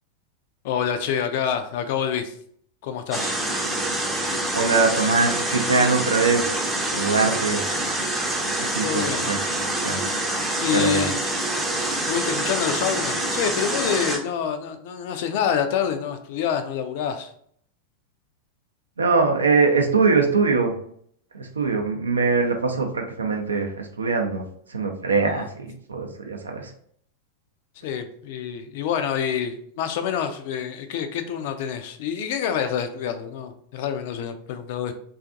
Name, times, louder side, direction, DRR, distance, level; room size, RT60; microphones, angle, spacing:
voice 1, 0.6-2.3 2.8-3.4 8.8-9.3 10.6-11.2 12.1-17.3 25.2-25.5 27.8-34.9, left 8 dB, 50° left, 8 dB, 0.3 m, -27 dB
sound 1, 3.1-14.2, right 1 dB, 5° right, 0.5 m, -26 dB
voice 2, 4.5-7.6 8.6-10.0 10.7-11.1 19.0-20.7 21.3-24.4 24.7-26.7, right 4 dB, 75° right, 4 dB, 0.4 m, -22 dB
2.4 x 2.4 x 2.5 m, 0.64 s
figure-of-eight pair, 90°, 0 cm